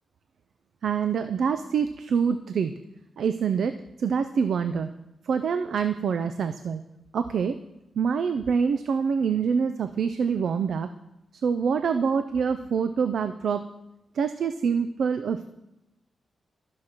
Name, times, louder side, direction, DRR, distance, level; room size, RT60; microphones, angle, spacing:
voice 1, 0.8-2.7 3.2-4.9 5.2-6.8 7.1-7.6 8.0-10.9 11.4-13.6 14.1-15.5, right 6 dB, 75° right, 9 dB, 0.3 m, -25 dB
12.5 x 6.3 x 2.9 m, 0.90 s
cardioid pair, 75°, 0 cm